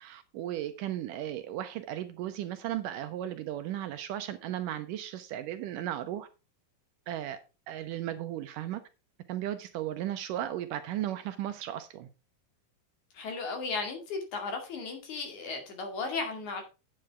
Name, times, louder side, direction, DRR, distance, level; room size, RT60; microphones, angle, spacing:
voice 1, 0.0-6.3 7.1-7.4 7.7-8.8 9.3-12.1, right 12 dB, 75° right, 2.1 m, -35 dB
voice 2, 13.1-16.6, left 4 dB, 55° left, 3.6 m, -35 dB
9.1 x 7.6 x 4.7 m
omnidirectional pair, 4.1 m